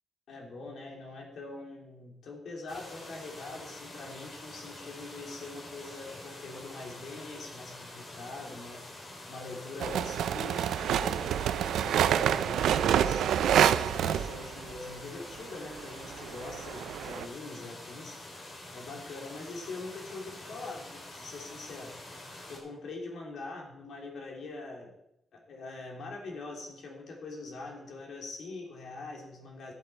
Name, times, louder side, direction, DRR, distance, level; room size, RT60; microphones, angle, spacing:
voice 1, 0.3-18.4 18.7-21.9 22.5-24.9 25.3-29.7, left 3 dB, 60° left, 0 dB, 3.0 m, -43 dB
sound 1, 2.7-22.6, left 1 dB, 40° left, 2.9 m, -46 dB
sound 2, 9.8-14.7 15.8-17.3, right 9 dB, 90° right, 0.4 m, -27 dB
13.0 x 8.0 x 4.3 m, 0.81 s
wide cardioid pair, 160°, 0 cm